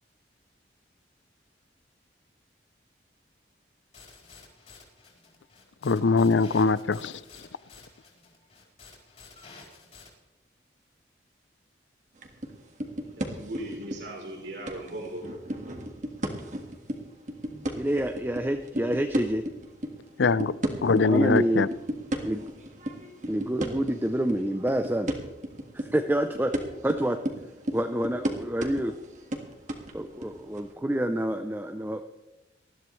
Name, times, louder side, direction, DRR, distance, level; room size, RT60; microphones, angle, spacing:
sound 1, 3.9-10.1, left 4 dB, 35° left, 4.5 m, -51 dB
voice 1, 5.8-7.1 20.2-20.5 20.8-21.7, left 4 dB, 80° left, 18 dB, 0.5 m, -22 dB
sound 2, 12.2-12.5 12.8-14.3 14.7-19.9 20.2-30.7, equal, 40° right, 1.8 m, -34 dB
voice 2, 13.2-15.3, right 1 dB, 70° right, -2 dB, 4.0 m, -38 dB
voice 3, 17.5-19.4 20.9-21.7 22.2-22.4 23.3-25.1 25.7-26.5 26.8-27.2 27.7-28.9 29.9-32.1, right 1 dB, 10° right, 6 dB, 0.6 m, -27 dB
20.0 x 13.5 x 3.2 m, 1.0 s
head